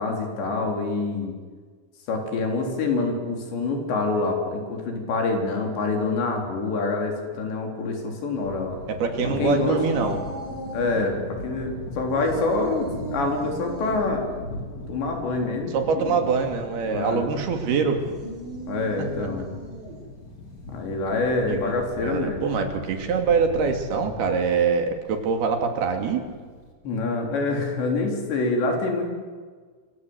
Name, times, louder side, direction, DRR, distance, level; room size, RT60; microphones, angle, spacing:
voice 1, 0.0-1.4 2.1-8.8 9.4-9.8 10.7-14.3 14.9-16.2 16.9-17.3 18.7-19.5 20.7-22.5 26.8-29.1, left 3 dB, 85° left, 2 dB, 6.1 m, -26 dB
Thunder, 8.3-26.7, left 2 dB, 40° left, 4.4 m, -39 dB
voice 2, 8.9-10.2 15.7-18.0 19.0-19.3 21.5-26.2, right 5 dB, 65° right, 5 dB, 4.3 m, -24 dB
sound 1, 9.1-11.1 12.1-14.1 17.9-20.1, right 3 dB, 85° right, 8.4 m, -37 dB
27.5 x 26.0 x 8.1 m, 1.6 s
omnidirectional pair, 4.9 m